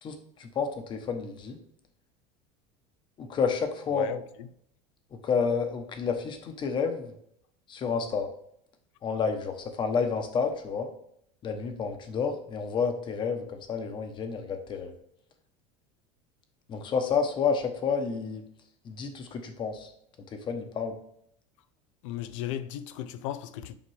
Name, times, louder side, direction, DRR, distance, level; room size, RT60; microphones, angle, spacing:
voice 1, 0.0-1.6 3.2-4.1 5.1-7.1 7.7-8.3 9.0-10.9 11.4-14.9 16.7-18.4 18.8-19.9 20.3-21.0, left 5 dB, 30° left, 1.1 m, -30 dB
voice 2, 3.9-4.5 22.0-23.7, left 11 dB, 85° left, 0.6 m, -35 dB
7.2 x 5.1 x 3.4 m
supercardioid pair, 145°, 16 cm